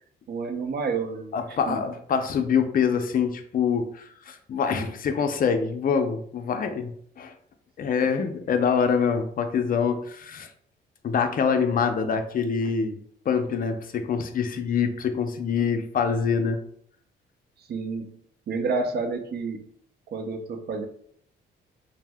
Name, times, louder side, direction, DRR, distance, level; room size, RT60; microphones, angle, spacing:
voice 1, 0.3-1.8 4.8-4.9 8.0-8.1 11.5-11.8 17.6-18.2 18.5-19.7 20.1-20.9, right 4 dB, 55° right, 6 dB, 0.5 m, -30 dB
voice 2, 1.3-6.9 7.2-7.3 7.8-10.5 11.0-13.0 13.3-16.6, left 6 dB, 45° left, 7 dB, 0.4 m, -25 dB
2.6 x 2.0 x 3.3 m, 0.63 s
cardioid pair, 90°, 20 cm